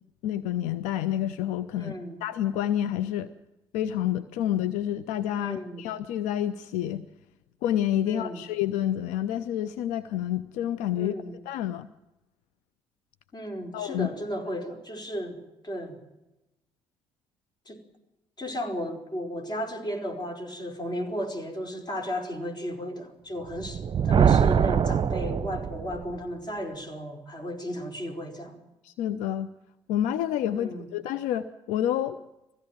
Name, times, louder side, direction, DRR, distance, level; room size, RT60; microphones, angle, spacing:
voice 1, 0.2-2.0 2.2-3.3 3.7-7.0 7.6-11.1 11.5-11.9 13.7-14.1 28.8-29.5 29.9-32.2, left 11 dB, 70° left, 13 dB, 0.7 m, -28 dB
voice 2, 1.8-2.2 5.4-5.8 8.0-8.4 11.0-11.3 13.3-15.4 15.6-16.0 17.7-17.8 18.4-28.6 30.5-30.9, equal, 35° left, 4 dB, 4.8 m, -34 dB
Thunder, 23.5-26.2, right 8 dB, 40° right, 0.8 m, -23 dB
21.5 x 16.0 x 8.9 m, 0.97 s
hypercardioid pair, 50°, 13 cm